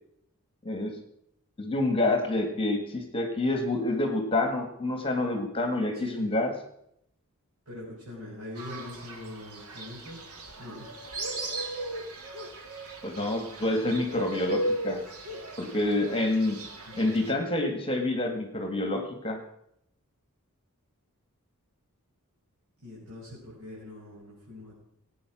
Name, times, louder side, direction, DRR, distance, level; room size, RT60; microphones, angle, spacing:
voice 1, 0.6-1.0 1.6-6.5 13.0-15.0 15.6-16.6 17.0-19.4, left 2 dB, 25° left, 5 dB, 2.0 m, -28 dB
voice 2, 5.9-6.3 7.6-10.2 10.6-10.8 16.9-17.4 22.8-24.7, left 2 dB, 65° right, -7 dB, 6.3 m, -43 dB
Fowl, 8.6-17.3, right 1 dB, 85° right, 2.3 m, -36 dB
18.5 x 9.4 x 6.2 m, 0.75 s
head